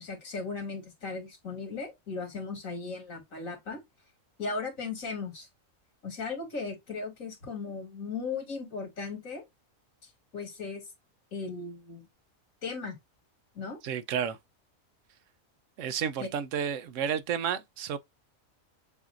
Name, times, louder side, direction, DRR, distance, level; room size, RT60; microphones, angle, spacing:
voice 1, 0.0-3.8 4.4-5.5 6.0-9.4 10.0-10.8 11.3-12.0 12.6-13.0 13.5-13.8 16.2-16.3, left 4 dB, 90° left, 2.4 m, -37 dB
voice 2, 13.8-14.4 15.8-18.0, right 8 dB, 75° right, 1.0 m, -31 dB
6.9 x 2.7 x 2.3 m
omnidirectional pair, 1.4 m